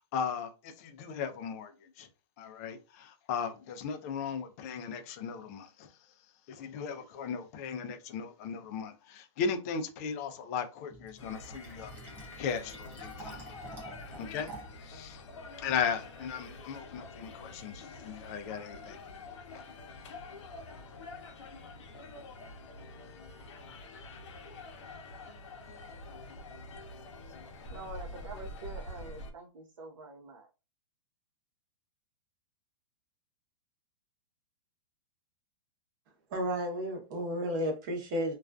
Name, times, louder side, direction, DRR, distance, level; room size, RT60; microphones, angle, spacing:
voice 1, 0.1-2.1 2.4-5.9 6.5-11.9 12.4-13.5 14.2-14.5 14.8-15.2 15.6-19.0 19.5-19.6, left 6 dB, 30° left, 0.3 m, -37 dB
Fill (with liquid), 10.9-14.9, right 2 dB, 10° right, 0.6 m, -48 dB
sound 1, 11.2-29.3, left 2 dB, 70° left, 0.6 m, -47 dB
voice 2, 27.7-30.5, right 2 dB, 90° right, 0.8 m, -46 dB
voice 3, 36.3-38.4, equal, 40° right, 0.8 m, -32 dB
2.4 x 2.3 x 2.2 m
supercardioid pair, 160°, 16 cm